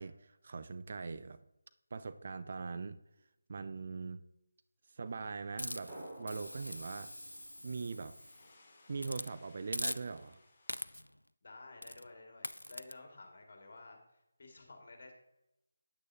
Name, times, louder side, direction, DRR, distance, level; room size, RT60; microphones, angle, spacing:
voice 1, 0.0-1.4 1.9-3.0 3.5-4.2 5.0-7.1 7.6-8.2 8.9-10.4, right 4 dB, 45° right, 12 dB, 0.5 m, -41 dB
sound 1, 5.0-10.9, left 2 dB, 35° left, 3.3 m, -66 dB
Hiss, 5.6-8.5 9.0-9.3 9.7-10.3 10.7-11.2 11.8-12.1 12.4-12.9, left 1 dB, 85° left, 0.3 m, -42 dB
Drum, 5.9-8.6, right 1 dB, 20° right, 2.3 m, -53 dB
voice 2, 11.4-15.1, left 2 dB, 50° left, 3 dB, 2.1 m, -53 dB
9.5 x 9.0 x 2.8 m, 0.87 s
figure-of-eight pair, 155°, 0 cm